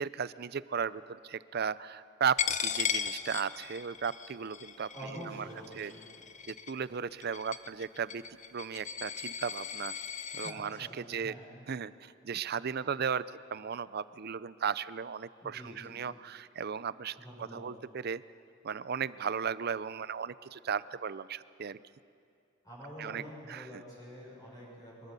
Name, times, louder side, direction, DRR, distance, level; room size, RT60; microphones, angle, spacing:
voice 1, 0.0-5.5 5.7-5.9 6.5-8.2 8.5-9.9 10.3-11.3 11.7-13.2 13.5-18.2 18.6-21.8 23.0-23.8, right 6 dB, 55° right, 17 dB, 0.5 m, -36 dB
Coin (dropping), 2.4-10.5, left 8 dB, 40° left, 0.8 m, -37 dB
voice 2, 4.9-6.1 10.3-11.4 15.4-15.9 17.2-17.6 22.6-25.1, equal, 20° left, -7 dB, 6.5 m, -46 dB
23.5 x 21.5 x 6.9 m, 2.5 s
head